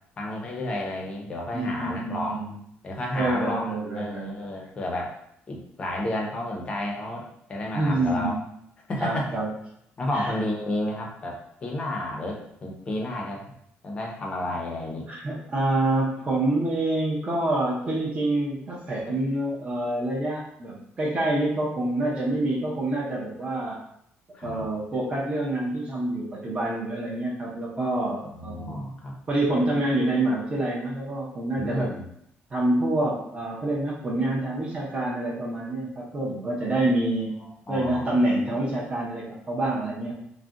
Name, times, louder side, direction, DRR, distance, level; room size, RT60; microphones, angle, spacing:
voice 1, 0.2-2.4 2.8-5.1 5.5-8.3 8.9-9.4 10.0-13.4 13.8-15.1 24.3-24.6 28.2-29.1 31.6-32.1 37.4-38.1, left 1 dB, 25° left, -1 dB, 0.5 m, -31 dB
voice 2, 1.5-2.5 3.1-4.3 7.7-8.4 9.0-9.5 10.1-10.3 15.1-23.8 24.4-28.8 29.3-31.9 32.5-37.4 37.7-40.1, right 1 dB, 25° right, -5 dB, 0.5 m, -27 dB
2.4 x 2.1 x 3.6 m, 0.72 s
cardioid pair, 175°, 4 cm